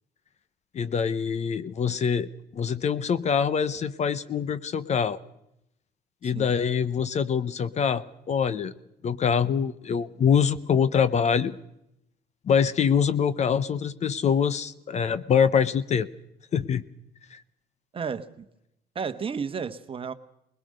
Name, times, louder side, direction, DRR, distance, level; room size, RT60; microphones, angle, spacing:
voice 1, 0.7-5.2 6.2-8.7 9.0-11.6 12.5-16.1 16.5-16.8 17.3-17.4, left 7 dB, 40° left, 16 dB, 0.8 m, -24 dB
voice 2, 17.9-18.4 18.9-20.1, right 6 dB, 30° right, 11 dB, 1.2 m, -32 dB
20.5 x 20.5 x 6.5 m, 0.81 s
cardioid pair, 110°, 17 cm